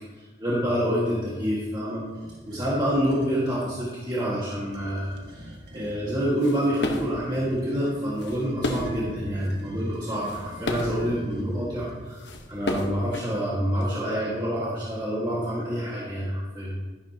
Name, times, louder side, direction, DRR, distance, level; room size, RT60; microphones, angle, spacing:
voice 1, 0.0-2.0 2.4-12.2 12.5-16.8, equal, 25° right, -7 dB, 1.8 m, -27 dB
sound 1, 2.1-3.4 4.5-6.2 6.9-12.5, right 1 dB, 85° right, 1.6 m, -44 dB
sound 2, 6.1-7.2 7.9-9.0 9.4-9.6 10.0-11.1 11.9-12.0 12.2-13.8, left 1 dB, 90° left, 1.2 m, -32 dB
12.5 x 11.0 x 2.9 m, 1.3 s
head